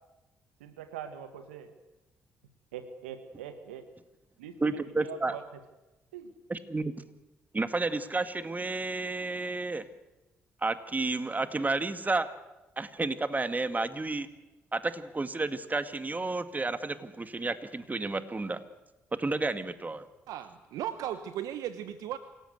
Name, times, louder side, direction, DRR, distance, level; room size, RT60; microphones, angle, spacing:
voice 1, 0.6-1.7 2.7-3.8 4.4-5.4 6.1-6.3, right 8 dB, 85° right, 10 dB, 1.6 m, -42 dB
voice 2, 4.6-5.4 6.5-7.0 7.5-9.8 10.6-12.3 12.8-14.3 14.7-18.6 19.2-20.0, right 3 dB, 25° right, 11 dB, 2.1 m, -31 dB
voice 3, 20.3-22.2, right 11 dB, 70° right, 12 dB, 1.0 m, -36 dB
27.5 x 17.5 x 8.0 m, 1.0 s
hypercardioid pair, 45°, 6 cm